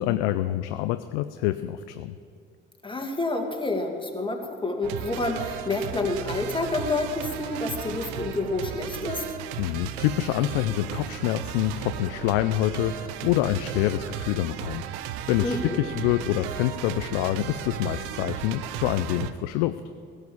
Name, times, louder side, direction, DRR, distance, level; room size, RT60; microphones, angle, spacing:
voice 1, 0.0-2.1 9.6-14.8 15.3-19.8, left 14 dB, 70° left, 11 dB, 0.5 m, -26 dB
voice 2, 2.8-9.2 15.4-15.8, left 2 dB, 15° left, 2 dB, 2.3 m, -28 dB
sound 1, 4.8-19.3, right 10 dB, 70° right, 0.7 m, -35 dB
16.5 x 6.6 x 8.5 m, 2.4 s
hypercardioid pair, 50°, 31 cm